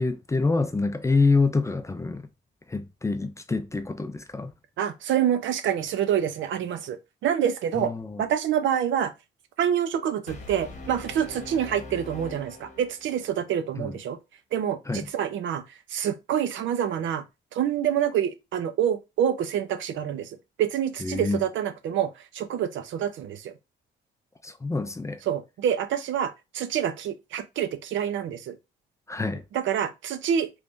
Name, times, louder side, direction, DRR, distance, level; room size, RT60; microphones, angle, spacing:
voice 1, 0.0-2.3 2.7-4.5 7.8-8.2 13.8-14.0 14.9-15.1 21.0-21.4 24.4-25.2 29.1-29.4, left 3 dB, 15° left, 0.4 m, -26 dB
voice 2, 4.8-7.0 7.2-7.9 8.2-9.1 9.6-14.2 14.5-15.6 15.9-17.2 17.5-20.3 20.6-23.5 25.3-28.6 29.5-30.5, right 9 dB, 75° right, 0.6 m, -27 dB
Brass instrument, 10.3-13.4, left 2 dB, 35° left, 1.0 m, -42 dB
3.4 x 3.1 x 2.6 m
cardioid pair, 90°, 20 cm